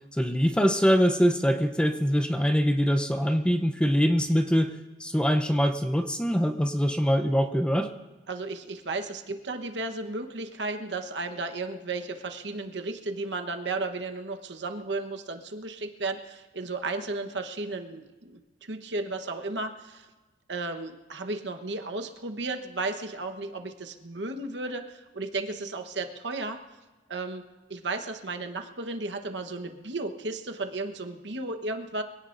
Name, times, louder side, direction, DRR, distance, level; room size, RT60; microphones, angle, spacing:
voice 1, 0.1-4.7 5.0-7.9, equal, 5° left, 7 dB, 0.7 m, -23 dB
voice 2, 8.3-20.1 20.5-26.6 27.1-27.4 27.7-32.0, right 3 dB, 80° right, 5 dB, 1.2 m, -34 dB
24.5 x 17.5 x 2.6 m, 1.2 s
head